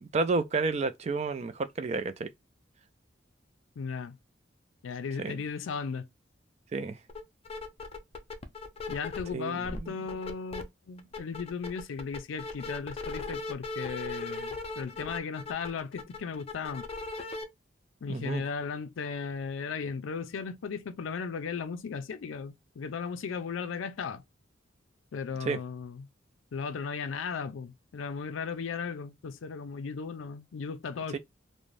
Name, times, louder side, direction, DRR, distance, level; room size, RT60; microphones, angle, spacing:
voice 1, 0.0-2.3 5.2-5.3 6.7-7.0 9.3-9.9 18.1-18.4 25.4-25.6 31.1-31.2, right 3 dB, 35° right, 0.3 m, -31 dB
voice 2, 3.8-4.2 4.8-6.1 8.9-16.9 18.0-24.2 25.1-26.1 26.5-31.2, left 5 dB, 90° left, 0.4 m, -36 dB
sound 1, 7.1-7.2 7.5-9.3 9.6-10.6 11.0-17.4, left 3 dB, 30° left, 0.4 m, -38 dB
2.5 x 2.1 x 3.1 m
head